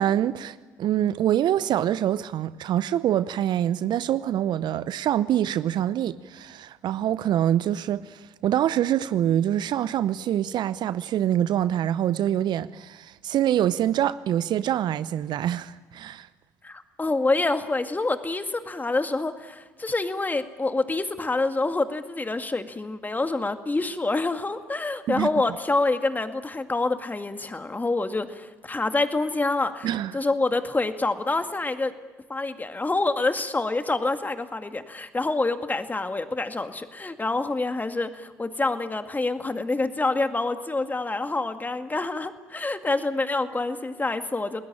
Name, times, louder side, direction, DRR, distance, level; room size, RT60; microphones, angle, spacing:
voice 1, 0.0-16.3 25.1-25.3 29.8-30.2, right 11 dB, 55° right, 0.7 m, -25 dB
voice 2, 16.6-31.9 32.3-44.6, left 2 dB, 20° left, 2.1 m, -27 dB
29.5 x 20.5 x 8.8 m
hypercardioid pair, 55°, 9 cm